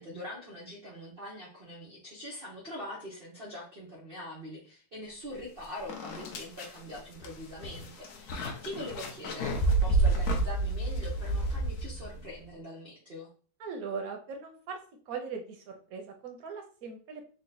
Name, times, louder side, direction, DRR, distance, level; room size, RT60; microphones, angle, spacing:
voice 1, 0.0-9.5 9.8-13.3, left 1 dB, 80° right, -3 dB, 0.5 m, -43 dB
sound 1, 5.4-5.5 5.9-12.3, right 2 dB, 65° left, 0.9 m, -30 dB
voice 2, 13.6-14.8 15.1-17.2, right 5 dB, 60° right, 4 dB, 1.0 m, -39 dB
3.9 x 2.1 x 3.9 m, 0.41 s
omnidirectional pair, 2.2 m